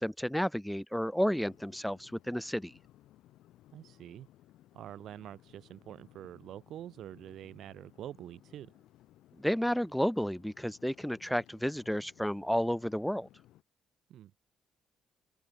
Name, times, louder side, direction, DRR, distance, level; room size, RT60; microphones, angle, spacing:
voice 1, 0.0-2.7 9.4-13.3, equal, ahead, 0.3 m, -31 dB
sound 1, 1.3-13.6, left 14 dB, 85° left, 2.1 m, -61 dB
voice 2, 3.7-4.3 4.7-8.7 14.1-14.4, right 11 dB, 75° right, 0.9 m, -46 dB
open air
cardioid pair, 90°, 0 cm